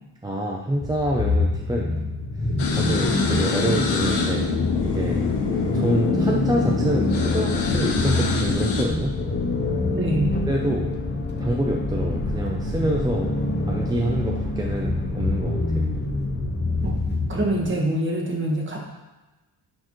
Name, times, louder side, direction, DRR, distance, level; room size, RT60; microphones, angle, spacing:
voice 1, 0.2-2.0 2.8-4.5 4.8-5.2 5.7-9.1 10.5-10.9 11.4-13.3 13.7-15.9, right 1 dB, 10° right, -1 dB, 0.5 m, -26 dB
sound 1, 0.8-17.7, left 2 dB, 25° left, 0.8 m, -26 dB
sound 2, 2.6-8.9, left 5 dB, 75° left, 1.1 m, -26 dB
voice 2, 9.9-10.4 16.8-16.9 17.3-18.9, right 1 dB, 30° right, -1 dB, 1.4 m, -25 dB
10.5 x 4.5 x 3.1 m, 1.1 s
wide cardioid pair, 150°, 41 cm